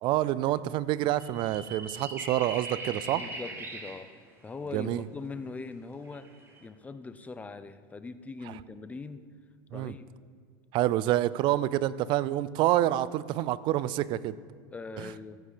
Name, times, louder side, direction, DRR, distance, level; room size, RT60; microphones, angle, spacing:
voice 1, 0.0-3.2 4.7-5.0 9.7-9.9 10.7-14.4 15.0-15.1, right 14 dB, 45° right, 18 dB, 0.5 m, -27 dB
sound 1, 1.2-4.1 5.6-5.7 6.1-6.7, right 3 dB, 20° right, 1.9 m, -40 dB
voice 2, 3.1-4.1 4.4-9.2 9.7-10.1 14.7-15.4, left 4 dB, 15° left, 12 dB, 0.6 m, -41 dB
15.0 x 8.1 x 5.1 m, 2.1 s
supercardioid pair, 130°, 11 cm